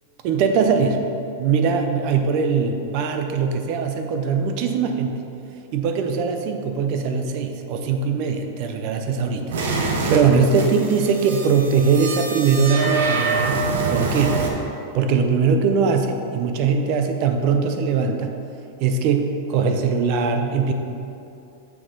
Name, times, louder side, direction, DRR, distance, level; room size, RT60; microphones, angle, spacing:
voice 1, 0.2-1.0 1.4-5.2 5.7-14.4 14.9-18.3 18.8-20.7, right 5 dB, 40° right, 6 dB, 0.5 m, -21 dB
sound 1, 9.5-14.5, right 4 dB, 85° right, 1.0 m, -25 dB
7.0 x 6.3 x 3.8 m, 2.7 s
supercardioid pair, 170°, 0 cm